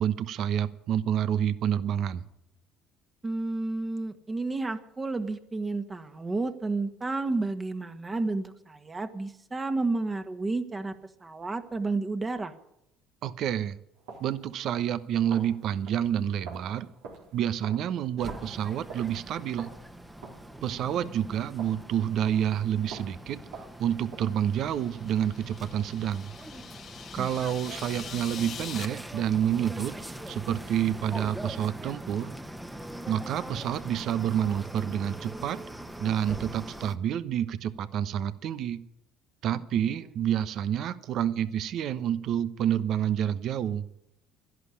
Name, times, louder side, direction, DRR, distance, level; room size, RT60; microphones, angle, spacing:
voice 1, 0.0-2.2 13.2-13.8 14.2-16.9 17.3-19.7 20.6-26.3 27.1-29.9 30.3-32.3 33.1-35.6 36.0-38.8 39.4-43.9, right 10 dB, 60° right, 14 dB, 1.0 m, -28 dB
voice 2, 3.2-10.9 11.2-12.5 20.9-21.2 27.1-27.4 39.5-39.6, right 3 dB, 25° right, 7 dB, 1.7 m, -31 dB
sound 1, 14.0-22.6 22.9-24.5, right 4 dB, 80° right, 3.9 m, -47 dB
sound 2, 18.2-37.0, right 1 dB, 5° right, 1.2 m, -42 dB
sound 3, 24.7-28.9, left 8 dB, 50° left, 1.2 m, -44 dB
12.5 x 11.0 x 10.0 m, 0.80 s
supercardioid pair, 75°, 0 cm